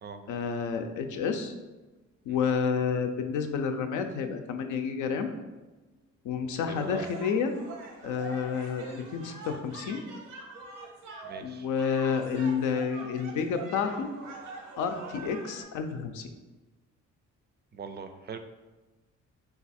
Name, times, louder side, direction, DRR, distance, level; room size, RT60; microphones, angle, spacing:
voice 1, 0.3-1.5 2.3-5.3 6.2-7.5 8.0-10.0 11.4-14.1 14.8-16.3, left 6 dB, 80° left, 6 dB, 0.5 m, -30 dB
voice 2, 6.7-7.1 8.5-8.7 11.2-11.7 17.7-18.4, right 5 dB, 35° right, 8 dB, 0.4 m, -42 dB
sound 1, 6.8-15.6, right 4 dB, 85° right, 0.8 m, -44 dB
3.9 x 2.4 x 4.1 m, 1.2 s
cardioid pair, 90°, 30 cm